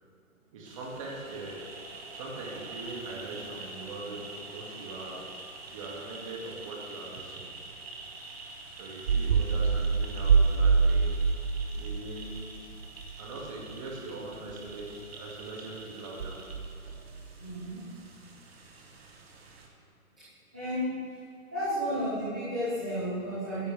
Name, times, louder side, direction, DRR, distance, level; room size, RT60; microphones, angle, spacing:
voice 1, 0.5-1.7 2.1-5.3 5.7-7.4 8.8-12.5 13.2-16.4 16.9-17.0 17.7-17.8, right 2 dB, 20° right, -3 dB, 2.1 m, -41 dB
sound 1, 0.6-19.7, right 3 dB, 45° right, 1.9 m, -46 dB
sound 2, 7.2-7.4 9.1-13.1 13.4-13.7 14.5-14.7 16.2-17.3, right 5 dB, 65° right, 0.7 m, -26 dB
voice 2, 17.4-17.9 20.5-20.9 21.5-23.7, equal, 5° right, -16 dB, 0.6 m, -32 dB
23.0 x 10.5 x 3.4 m, 2.4 s
hypercardioid pair, 170°, 44 cm